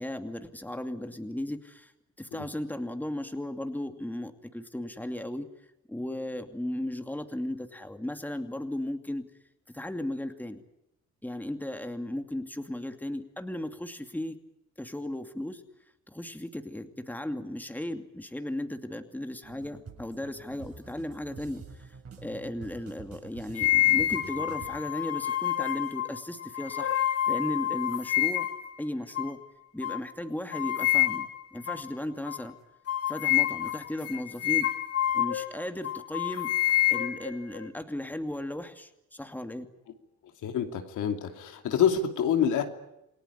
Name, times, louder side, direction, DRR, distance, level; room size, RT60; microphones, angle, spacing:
voice 1, 0.0-1.9 2.2-5.5 5.9-9.3 9.7-10.6 11.2-14.4 14.8-15.6 16.1-28.5 28.8-29.4 29.7-32.5 33.1-34.7 35.1-36.5 36.9-39.7, left 1 dB, 5° left, 7 dB, 2.5 m, -36 dB
sound 1, 19.4-24.8, right 5 dB, 50° right, 7.3 m, -47 dB
sound 2, 23.6-28.7 29.2-29.3 29.8-30.0 30.5-31.4 31.7-31.9 32.3-32.4 32.9-35.5 35.8-37.7, left 13 dB, 50° left, 2.9 m, -27 dB
voice 2, 40.4-42.6, left 8 dB, 80° left, 5 dB, 2.9 m, -26 dB
28.5 x 18.5 x 10.0 m, 0.87 s
cardioid pair, 90°, 30 cm